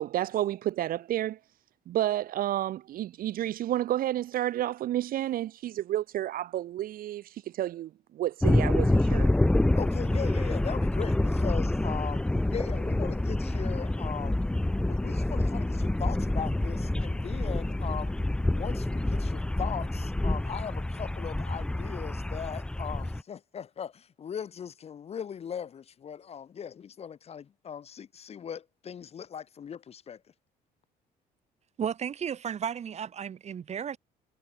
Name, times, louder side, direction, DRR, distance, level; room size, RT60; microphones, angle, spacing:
voice 1, 0.0-1.4 1.9-9.3, right 13 dB, 60° right, 0.6 m, -30 dB
sound 1, 8.4-23.2, left 1 dB, 5° left, 0.4 m, -27 dB
voice 2, 9.7-12.2 12.5-14.4 14.9-18.1 18.5-30.2, left 8 dB, 35° left, 0.8 m, -39 dB
voice 3, 31.8-34.0, right 8 dB, 40° right, 1.2 m, -33 dB
cardioid pair, 110°, 17 cm